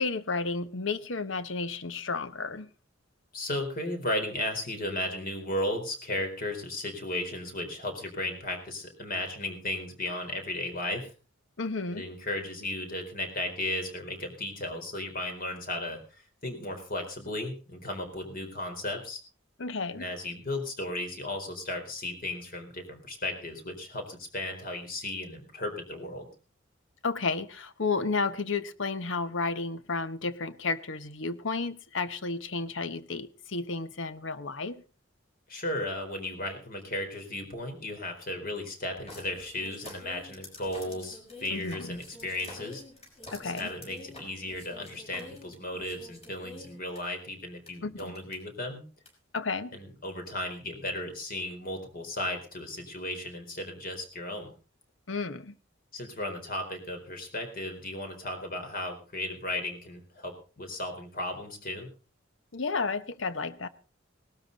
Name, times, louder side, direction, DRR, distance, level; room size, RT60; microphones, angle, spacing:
voice 1, 0.0-2.7 11.6-12.0 19.6-20.0 27.0-34.8 41.5-41.9 43.3-43.7 47.8-48.1 49.3-49.8 55.1-55.5 62.5-63.7, left 4 dB, 70° left, 1.1 m, -32 dB
voice 2, 3.3-11.1 11.9-19.2 19.9-26.3 35.5-42.8 43.4-48.8 49.7-54.5 55.9-61.9, left 1 dB, 50° left, 4.4 m, -35 dB
sound 1, 39.1-47.0 47.7-47.8 48.0-48.3 49.0-49.1, left 2 dB, 35° left, 5.9 m, -47 dB
19.0 x 13.0 x 4.1 m
head